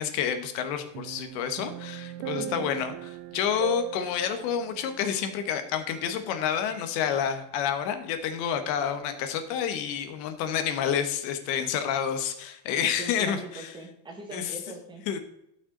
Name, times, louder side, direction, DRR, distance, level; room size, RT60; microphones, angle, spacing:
voice 1, 0.0-2.9 3.3-13.7 14.3-14.5 15.1-15.2, left 8 dB, 70° left, 8 dB, 1.4 m, -29 dB
sound 1, 0.9-6.4 6.7-6.9, right 16 dB, 60° right, 0.6 m, -39 dB
voice 2, 2.4-2.7 12.7-15.0, right 2 dB, 10° right, -1 dB, 1.6 m, -41 dB
12.5 x 6.1 x 3.9 m, 0.80 s
cardioid pair, 180°, 50 cm